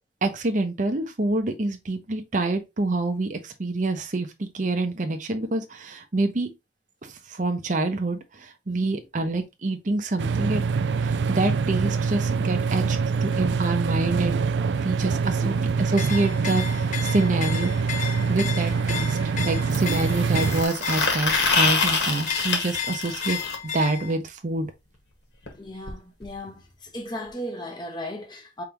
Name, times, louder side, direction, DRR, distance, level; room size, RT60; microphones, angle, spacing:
voice 1, 0.2-6.5 7.0-10.6 11.0-14.4 14.7-17.7 18.3-24.7, right 2 dB, 45° right, 0.8 m, -27 dB
sound 1, 10.2-20.7, right 5 dB, 85° right, 0.4 m, -25 dB
sound 2, 15.9-24.2, left 7 dB, 45° left, 0.7 m, -34 dB
sound 3, 17.7-17.8 19.7-23.5 25.5-25.6 25.9-26.0 26.2-26.3 27.3-27.4, left 4 dB, 75° left, 1.7 m, -25 dB
voice 2, 25.6-28.6, left 1 dB, 25° left, 1.1 m, -36 dB
4.9 x 3.5 x 2.9 m
head